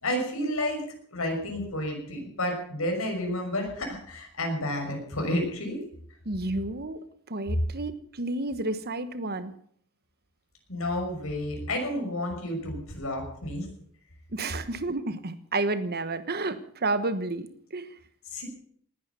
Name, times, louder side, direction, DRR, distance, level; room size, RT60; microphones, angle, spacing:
voice 1, 0.0-0.8 1.1-5.8 10.7-13.7 18.3-18.5, left 1 dB, 70° left, 2 dB, 6.0 m, -30 dB
voice 2, 6.2-9.5 14.3-17.9, right 2 dB, 45° right, 12 dB, 1.3 m, -31 dB
19.5 x 10.5 x 7.1 m, 0.62 s
head